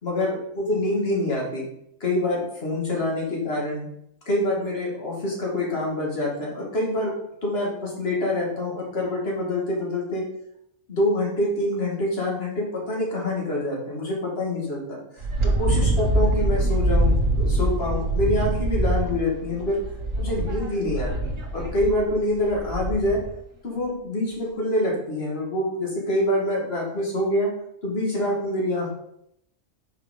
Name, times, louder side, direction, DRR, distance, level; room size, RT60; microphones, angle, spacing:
voice 1, 0.0-1.7 2.0-3.9 4.3-7.1 7.4-10.2 10.9-15.0 15.4-19.8 20.2-23.2 23.6-27.5 27.8-28.9, left 1 dB, 50° left, -2 dB, 2.0 m, -26 dB
Wind, 15.2-23.3, right 1 dB, 70° right, 1.7 m, -24 dB
6.1 x 4.8 x 3.7 m, 0.74 s
omnidirectional pair, 1.4 m